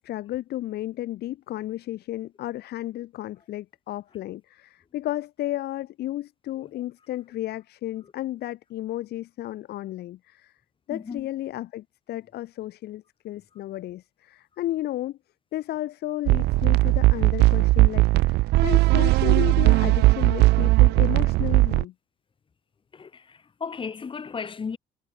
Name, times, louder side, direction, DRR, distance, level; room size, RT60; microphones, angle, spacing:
voice 1, 0.0-10.5 10.9-15.2 15.5-21.9, left 14 dB, 70° left, 4.1 m, -33 dB
voice 2, 10.9-11.3 18.5-18.6 22.9-24.8, left 5 dB, 30° left, 2.9 m, -36 dB
sound 1, 16.3-21.8, right 20 dB, 80° right, 0.5 m, -18 dB
cardioid pair, 110°, 17 cm